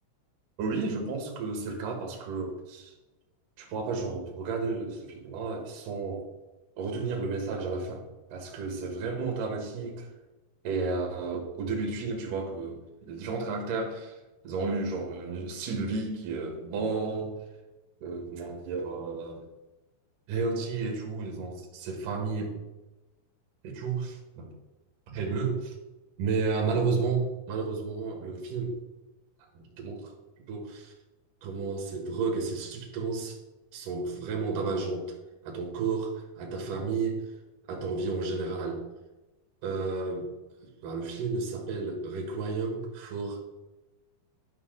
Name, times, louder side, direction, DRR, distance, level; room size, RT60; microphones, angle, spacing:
voice 1, 0.6-2.9 3.6-6.2 6.8-8.0 8.3-10.1 10.6-14.2 14.4-17.4 18.0-19.4 20.3-22.6 23.6-24.5 25.1-25.8 26.2-28.8 29.5-30.1 30.5-30.9 31.4-33.4 33.7-35.2 35.4-37.2 37.7-38.8 39.6-40.3 40.8-43.4, right 4 dB, 65° right, 1 dB, 2.3 m, -32 dB
11.0 x 6.0 x 3.9 m, 1.1 s
omnidirectional pair, 5.8 m